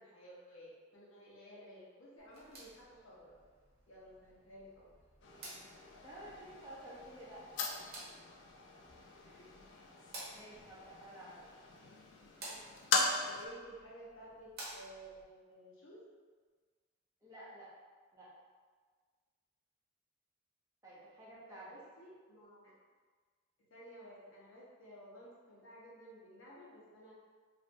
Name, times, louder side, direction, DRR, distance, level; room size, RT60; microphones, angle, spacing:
voice 1, 0.0-3.3 3.9-4.9 13.2-16.0 21.5-22.7 23.7-27.1, equal, 80° left, -7 dB, 1.0 m, -54 dB
sound 1, 2.2-15.2, right 1 dB, 50° right, 0.8 m, -54 dB
sound 2, 5.2-13.5, left 3 dB, 60° left, 0.4 m, -40 dB
voice 2, 6.0-7.9 9.2-9.5 10.3-11.4 17.2-17.7 18.1-18.3 20.8-21.7, right 1 dB, 15° right, -7 dB, 0.6 m, -52 dB
3.3 x 2.5 x 2.6 m, 1.5 s
head